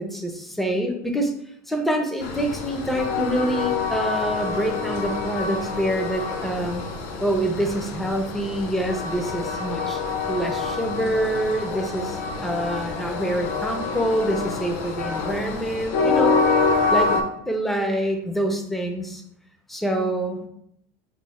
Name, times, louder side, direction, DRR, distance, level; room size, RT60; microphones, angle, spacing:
voice 1, 0.0-1.3 1.7-6.8 7.2-10.0 10.3-16.4 16.9-17.1 17.5-19.2 19.7-20.5, right 1 dB, ahead, 2 dB, 0.4 m, -26 dB
Train, 2.2-17.2, left 4 dB, 60° left, 0.6 m, -26 dB
3.0 x 2.0 x 4.0 m, 0.72 s
supercardioid pair, 160°, 10 cm